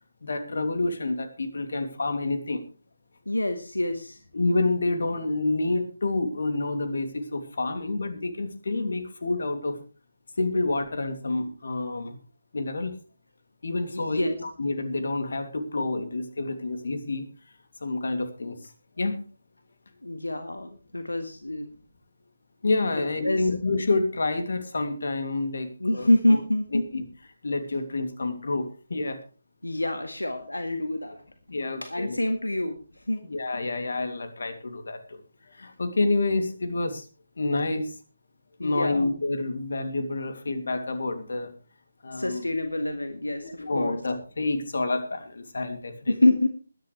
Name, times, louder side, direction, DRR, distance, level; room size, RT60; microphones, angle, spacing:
voice 1, 0.2-2.6 4.3-9.8 10.4-12.1 12.5-12.9 13.6-17.3 17.8-18.6 19.0-19.2 22.6-26.4 26.7-27.0 27.4-29.2 31.5-32.2 33.2-35.2 35.6-37.0 37.4-37.9 38.6-41.5 42.0-42.4 43.4-46.1, left 2 dB, 60° left, 7 dB, 2.8 m, -28 dB
voice 2, 3.3-4.2 13.9-14.4 20.0-21.7 23.2-23.6 25.8-26.8 29.6-31.2 31.8-32.8 33.1-33.2 38.6-39.1 42.1-44.0 46.1-46.5, left 1 dB, 85° left, 7 dB, 1.8 m, -26 dB
21.5 x 10.5 x 3.3 m, 0.35 s
figure-of-eight pair, 150°, 0 cm